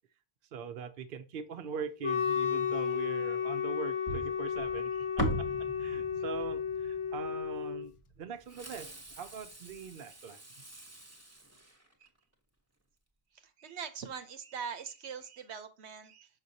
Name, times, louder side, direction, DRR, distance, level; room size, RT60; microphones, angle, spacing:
voice 1, 0.5-4.9 5.2-5.3 5.8-10.4, right 6 dB, 60° right, 0.8 m, -42 dB
Wind instrument woodwind instrument, 2.0-7.9, left 7 dB, 40° left, 0.5 m, -33 dB
sound 1, 4.1-8.4, equal, 20° left, 1.1 m, -38 dB
Fireworks, 8.5-12.3, right 1 dB, 15° right, 1.0 m, -51 dB
voice 2, 13.6-16.3, right 6 dB, 85° right, 1.1 m, -42 dB
6.2 x 5.8 x 2.7 m
omnidirectional pair, 1.1 m